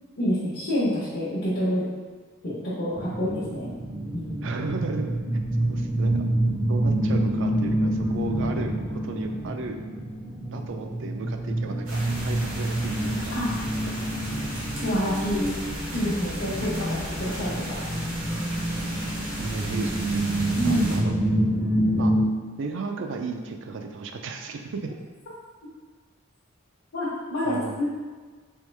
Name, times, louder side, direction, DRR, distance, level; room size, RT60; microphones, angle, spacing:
voice 1, 0.2-1.9 2.4-3.7 4.1-4.5 13.3-13.5 14.8-15.5 15.9-16.8 17.2-17.8 20.6-21.0 26.9-27.9, equal, 60° left, -10 dB, 0.9 m, -27 dB
sound 1, 2.9-22.2, right 1 dB, 5° right, 0.5 m, -27 dB
voice 2, 4.4-5.4 5.7-6.2 6.7-9.8 10.4-13.4 16.6-16.8 19.2-21.2 21.9-22.1 22.6-25.0 27.5-27.8, right 4 dB, 65° right, 5 dB, 0.4 m, -34 dB
sound 2, 11.9-21.0, equal, 90° right, 1.1 m, -36 dB
3.6 x 3.1 x 3.2 m, 1.5 s
head